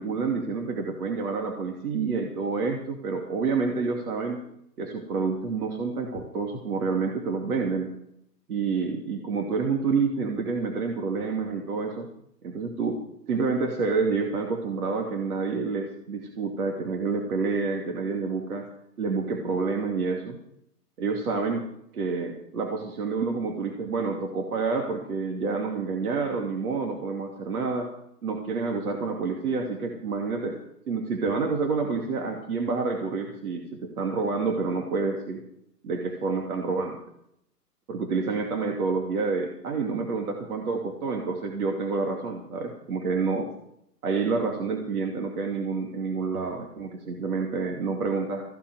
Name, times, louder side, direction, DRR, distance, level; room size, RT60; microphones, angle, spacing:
voice 1, 0.0-4.4 4.8-7.9 8.5-12.1 12.4-13.0 13.3-18.7 19.0-20.4 21.0-21.6 21.9-27.9 28.2-30.6 30.9-35.4 35.8-37.0 37.9-43.5 44.0-48.4, right 4 dB, 60° right, 2 dB, 2.6 m, -28 dB
15.5 x 7.5 x 9.4 m, 0.73 s
hypercardioid pair, 135°, 49 cm